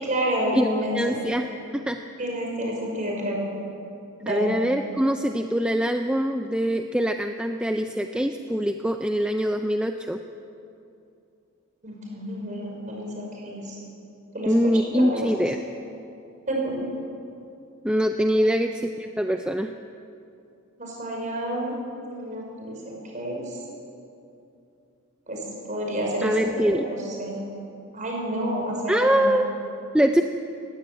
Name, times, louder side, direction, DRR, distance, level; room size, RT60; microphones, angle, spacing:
voice 1, 0.0-1.2 2.2-3.4 4.2-4.5 11.8-13.8 14.3-15.3 16.5-16.8 18.3-18.4 20.8-21.8 22.1-23.6 25.3-26.4 26.6-27.4 27.9-29.2, right 1 dB, 35° right, -1 dB, 5.6 m, -29 dB
voice 2, 0.9-1.5 1.7-2.0 4.3-10.2 14.4-15.6 17.8-19.7 26.2-26.8 28.9-29.5 29.9-30.2, equal, 5° right, 5 dB, 0.5 m, -23 dB
20.0 x 16.0 x 8.6 m, 2.7 s
head